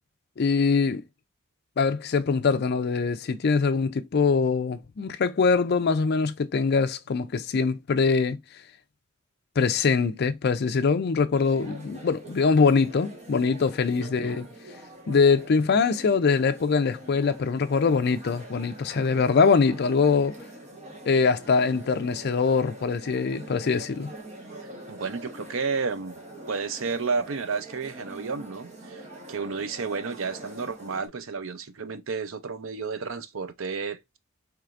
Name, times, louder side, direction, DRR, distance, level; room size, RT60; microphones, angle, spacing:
voice 1, 0.4-1.0 1.8-8.4 9.6-14.5 15.1-20.4 21.1-24.1, left 5 dB, 50° left, 0.4 m, -23 dB
sound 1, 11.3-31.1, right 1 dB, 35° right, 1.3 m, -45 dB
voice 2, 14.0-14.4 18.9-19.1 24.9-26.2 26.5-29.0 29.3-34.0, right 5 dB, 75° right, 0.6 m, -31 dB
4.6 x 3.2 x 2.5 m
head